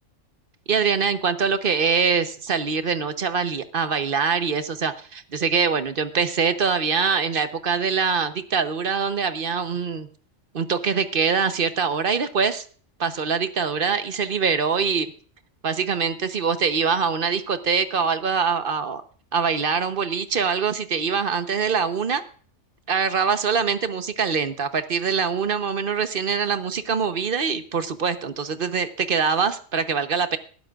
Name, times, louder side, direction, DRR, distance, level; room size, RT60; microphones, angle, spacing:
voice 1, 0.7-10.1 10.5-12.7 13.0-15.1 15.6-19.0 19.3-22.2 22.9-30.4, right 6 dB, 45° right, 11 dB, 1.0 m, -24 dB
20.0 x 11.5 x 2.4 m, 0.43 s
omnidirectional pair, 1.4 m